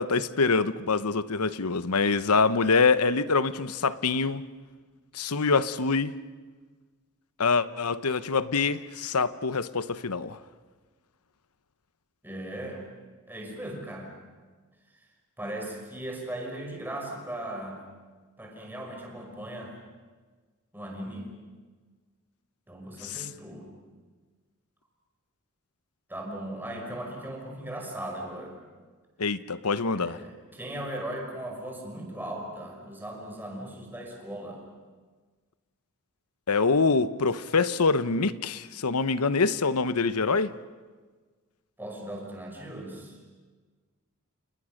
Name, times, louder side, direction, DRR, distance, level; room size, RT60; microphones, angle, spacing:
voice 1, 0.0-4.4 5.1-6.2 7.4-10.4 23.0-23.3 29.2-30.2 36.5-40.5, left 4 dB, 85° left, 1.0 m, -25 dB
voice 2, 12.2-12.8 13.3-14.1 15.4-17.8 18.4-19.8 20.7-21.3 22.7-23.7 26.1-28.6 29.9-34.6 41.8-43.2, right 1 dB, 10° right, 5.9 m, -38 dB
29.5 x 29.0 x 6.5 m
head